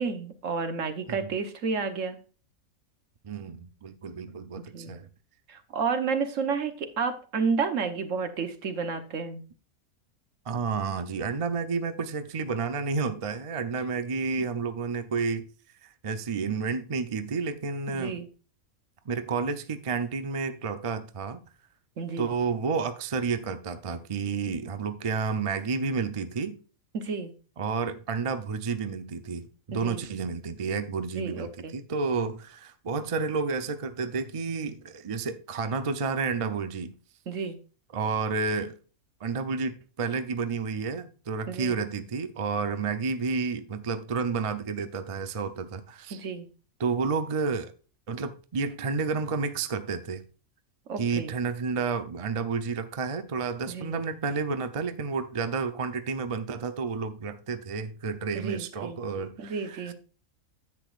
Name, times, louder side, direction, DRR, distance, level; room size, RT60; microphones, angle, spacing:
voice 1, 0.0-2.2 4.7-5.0 5.5-9.4 17.9-18.3 22.0-22.3 26.9-27.3 29.7-30.0 31.2-31.7 37.3-37.6 41.5-41.7 46.1-46.5 50.9-51.3 53.7-54.0 58.3-59.0 59.4-59.9, right 5 dB, 65° right, 1.4 m, -31 dB
voice 2, 3.2-5.1 10.5-15.5 15.8-18.2 19.1-21.4 22.2-26.6 27.6-36.9 37.9-38.7 39.2-46.2 46.8-47.7 48.1-50.2 51.0-59.9, right 5 dB, 45° right, 0.4 m, -30 dB
10.5 x 8.1 x 2.4 m
omnidirectional pair, 1.5 m